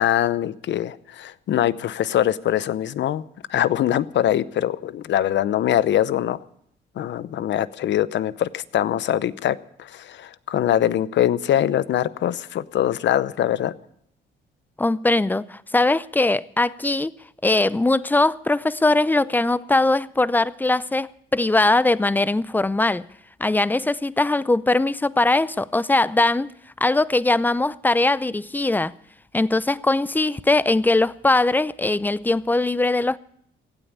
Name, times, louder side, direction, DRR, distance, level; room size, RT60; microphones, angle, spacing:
voice 1, 0.0-3.2 3.5-6.4 7.0-13.7, left 11 dB, 65° left, 0.8 m, -23 dB
voice 2, 14.8-17.1 17.4-23.0 23.4-26.5 26.8-28.9 29.3-33.2, left 2 dB, 10° left, 0.5 m, -21 dB
16.0 x 8.9 x 9.7 m
cardioid pair, 90°, 20 cm